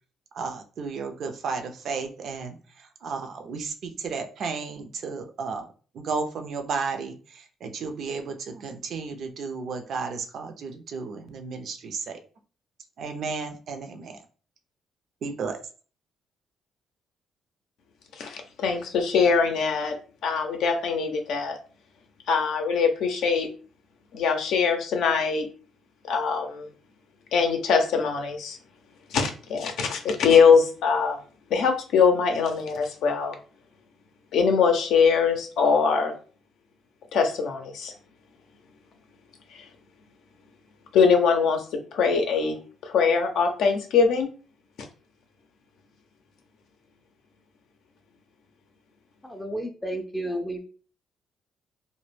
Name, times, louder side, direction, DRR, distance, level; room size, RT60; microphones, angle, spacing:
voice 1, 0.3-5.7 5.9-12.2 13.0-14.2 15.2-15.6, right 5 dB, 65° right, 6 dB, 0.4 m, -33 dB
voice 2, 18.2-20.0 20.2-21.6 22.3-23.5 24.1-25.5 26.1-26.7 27.3-28.6 29.1-31.2 31.5-33.4 34.3-36.1 37.1-37.9 40.9-41.6 41.9-42.6 42.8-44.3, left 5 dB, 80° left, 5 dB, 0.5 m, -22 dB
voice 3, 49.2-50.6, right 1 dB, 10° left, 3 dB, 0.4 m, -32 dB
2.1 x 2.1 x 3.1 m, 0.40 s
cardioid pair, 90°, 0 cm